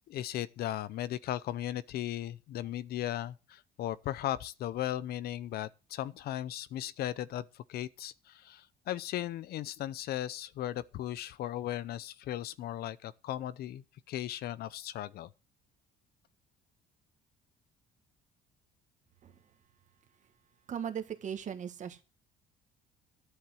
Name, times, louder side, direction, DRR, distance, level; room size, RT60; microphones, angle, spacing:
voice 1, 0.1-15.3, left 12 dB, 65° left, 0.7 m, -37 dB
voice 2, 20.7-22.0, right 8 dB, 45° right, 1.7 m, -38 dB
10.5 x 7.9 x 6.3 m
cardioid pair, 110°, 17 cm